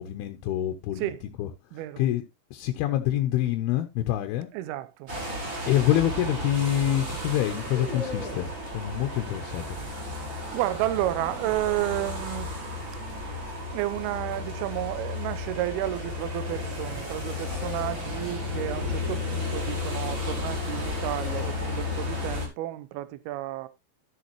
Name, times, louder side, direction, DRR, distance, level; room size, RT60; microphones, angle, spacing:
voice 1, 0.0-2.2 2.5-4.5 5.7-9.8, left 13 dB, 75° left, 2.5 m, -27 dB
voice 2, 1.7-2.0 4.5-5.1 10.5-12.5 13.7-23.7, right 15 dB, 75° right, 2.4 m, -31 dB
sound 1, 5.1-22.5, left 2 dB, 30° right, 3.3 m, -33 dB
sound 2, 7.3-8.6 10.7-11.7 14.1-14.5 17.3-19.7 20.7-22.0, left 3 dB, 30° left, 2.8 m, -42 dB
13.0 x 6.9 x 3.0 m
omnidirectional pair, 5.0 m